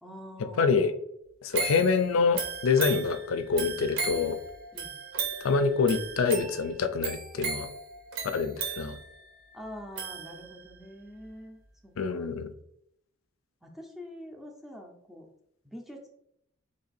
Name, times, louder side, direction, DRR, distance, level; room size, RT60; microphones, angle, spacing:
voice 1, 0.0-1.0 4.7-4.9 9.5-12.3 13.6-15.3 15.6-16.1, equal, ahead, 1 dB, 0.5 m, -45 dB
voice 2, 0.6-0.9 1.4-4.4 5.4-7.7 8.3-9.0 12.0-12.5, left 5 dB, 85° left, 10 dB, 0.4 m, -26 dB
sound 1, 1.5-10.8 11.3-11.4, right 5 dB, 70° right, 0.8 m, -36 dB
3.2 x 2.6 x 4.0 m, 0.76 s
head